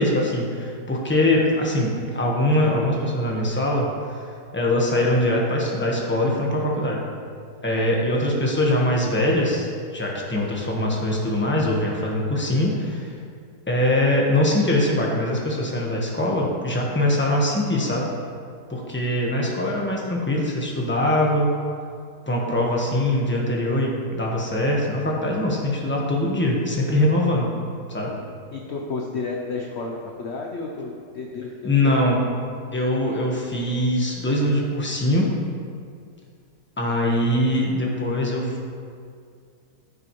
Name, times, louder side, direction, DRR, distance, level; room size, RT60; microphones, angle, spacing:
voice 1, 0.0-4.1 4.5-7.0 7.6-13.1 13.7-18.1 18.7-21.5 22.3-27.5 27.9-28.1 31.6-32.2 32.7-35.3 36.8-38.5, left 1 dB, 5° left, -3 dB, 1.2 m, -22 dB
voice 2, 28.5-32.2, left 4 dB, 50° left, 0 dB, 0.8 m, -32 dB
14.5 x 7.4 x 3.2 m, 2.2 s
omnidirectional pair, 1.9 m